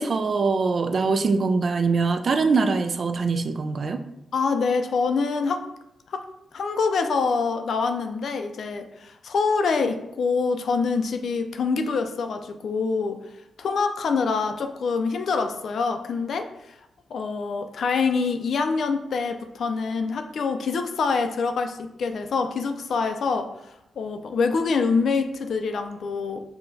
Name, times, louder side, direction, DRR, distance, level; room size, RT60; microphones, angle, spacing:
voice 1, 0.0-4.0, right 4 dB, 55° right, 8 dB, 0.3 m, -23 dB
voice 2, 4.3-5.6 6.1-6.2 6.5-13.2 13.6-16.8 17.1-23.5 24.0-26.4, left 4 dB, 70° left, 7 dB, 0.4 m, -25 dB
5.5 x 2.2 x 2.6 m, 0.86 s
cardioid pair, 65°, 0 cm